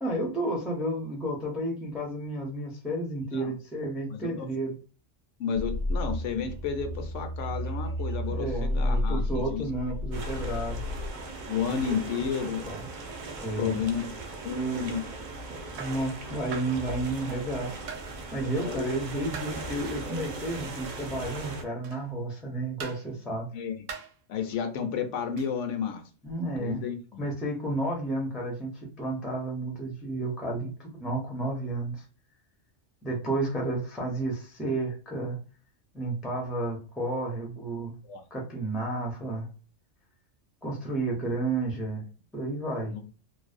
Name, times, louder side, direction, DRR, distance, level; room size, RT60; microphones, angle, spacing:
voice 1, 0.0-4.7 8.3-10.8 12.4-12.8 13.4-13.8 15.8-17.8 18.3-23.5 26.2-26.8 27.2-32.0 33.0-35.4 35.9-37.9 38.3-39.5 40.6-42.0 42.3-42.9, right 2 dB, ahead, -1 dB, 0.3 m, -32 dB
voice 2, 4.1-4.5 5.4-9.6 11.5-12.6 13.6-14.2 14.4-15.1 18.6-19.0 23.5-23.8 24.3-26.0 26.5-27.3 38.0-38.2 42.9-43.0, left 6 dB, 75° left, 6 dB, 0.9 m, -32 dB
sound 1, 5.5-11.1, left 1 dB, 50° right, 0.8 m, -31 dB
sound 2, 10.1-21.6, right 3 dB, 65° right, 0.4 m, -39 dB
sound 3, 14.7-14.9 15.8-16.0 16.5-16.8 17.9-18.1 19.3-19.6 20.9-21.1 21.8-22.1 22.8-23.1 23.9-24.2 25.4-25.6, right 6 dB, 80° right, 0.9 m, -41 dB
2.5 x 2.0 x 2.4 m, 0.38 s
omnidirectional pair, 1.3 m